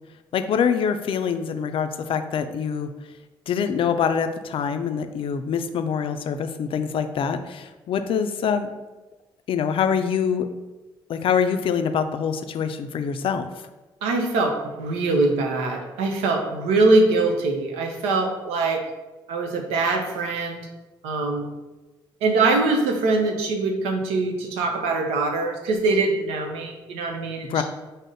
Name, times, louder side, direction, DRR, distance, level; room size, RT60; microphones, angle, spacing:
voice 1, 0.3-2.9 3.5-8.7 9.5-10.5 11.1-13.5 27.5-27.6, left 7 dB, 60° left, 8 dB, 0.4 m, -24 dB
voice 2, 14.0-18.8 19.3-20.7 21.0-21.5 22.2-27.5, right 3 dB, 90° right, 3 dB, 0.6 m, -23 dB
5.2 x 2.0 x 3.8 m, 1.1 s
supercardioid pair, 60°, 10 cm